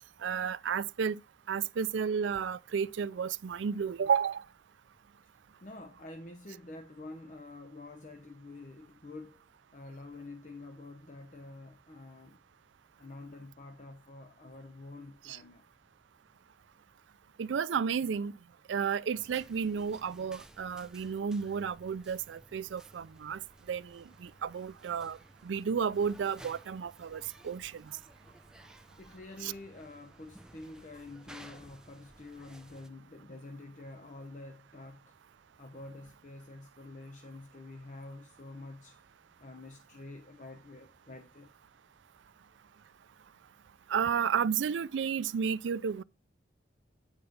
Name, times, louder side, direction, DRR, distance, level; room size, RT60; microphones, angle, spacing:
voice 1, 0.2-1.2 1.5-4.4 15.2-15.4 17.4-18.3 18.7-23.4 23.7-25.2 25.4-27.8 29.4-29.5 43.9-46.0, right 7 dB, 85° right, 0.4 m, -32 dB
voice 2, 5.5-9.4 9.7-12.4 13.0-15.7 29.0-35.2 35.6-39.1 39.4-41.5, left 2 dB, 40° left, 0.8 m, -48 dB
sound 1, 19.1-32.9, right 1 dB, 5° right, 0.6 m, -56 dB
9.8 x 4.4 x 5.1 m
head